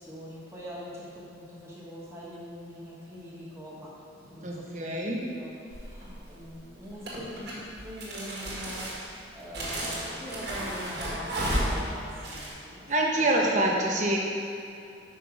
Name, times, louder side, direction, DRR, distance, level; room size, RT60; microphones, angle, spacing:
voice 1, 0.0-13.4, equal, 15° right, -6 dB, 1.2 m, -43 dB
voice 2, 4.4-5.3 12.9-14.2, right 1 dB, 40° right, -1 dB, 0.9 m, -26 dB
sound 1, 5.7-6.2 7.0-12.5, right 1 dB, 55° right, 1.7 m, -33 dB
5.6 x 5.4 x 4.8 m, 2.6 s
head